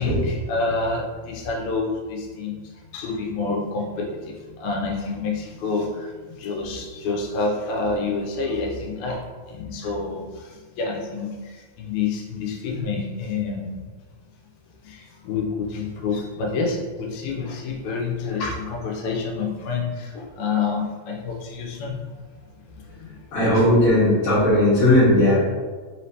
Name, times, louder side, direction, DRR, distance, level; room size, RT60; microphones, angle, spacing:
voice 1, 0.0-13.8 14.8-22.2 22.7-23.3, left 4 dB, 90° left, 0 dB, 2.0 m, -28 dB
voice 2, 23.3-25.4, left 1 dB, 50° left, -13 dB, 1.9 m, -17 dB
4.9 x 3.2 x 2.7 m, 1.4 s
omnidirectional pair, 3.3 m